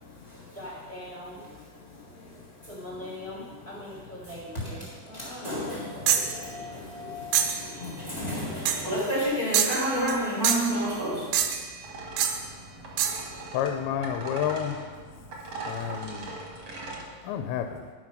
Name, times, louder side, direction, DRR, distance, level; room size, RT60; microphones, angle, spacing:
voice 1, 0.0-0.6 1.8-2.7 4.8-11.5, equal, 40° left, -8 dB, 0.5 m, -31 dB
voice 2, 0.5-1.5 2.6-7.2, equal, 5° left, -6 dB, 1.1 m, -42 dB
sound 1, 6.1-6.4 7.3-7.6 8.7-8.9 9.5-10.2 10.4-10.8 11.3-11.7 12.2-12.4 13.0-13.3, right 9 dB, 80° right, 2.1 m, -25 dB
sound 2, 11.8-17.0, right 2 dB, 50° right, 1.6 m, -40 dB
voice 3, 13.5-14.8 15.7-16.3 17.2-17.8, left 9 dB, 80° left, 6 dB, 2.4 m, -30 dB
11.0 x 6.2 x 5.2 m, 1.5 s
omnidirectional pair, 4.5 m